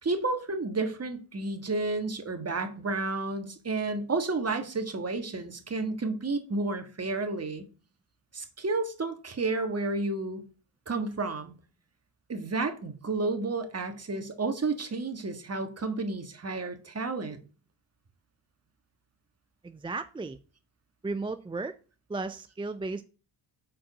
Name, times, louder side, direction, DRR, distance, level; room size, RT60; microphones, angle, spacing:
voice 1, 0.0-7.6 8.3-10.4 10.9-11.5 12.3-17.4, right 3 dB, 30° right, 1.6 m, -31 dB
voice 2, 19.6-20.4 21.0-21.7 22.1-23.0, right 3 dB, 10° right, 0.3 m, -34 dB
6.3 x 4.7 x 6.2 m
cardioid pair, 85°, 48 cm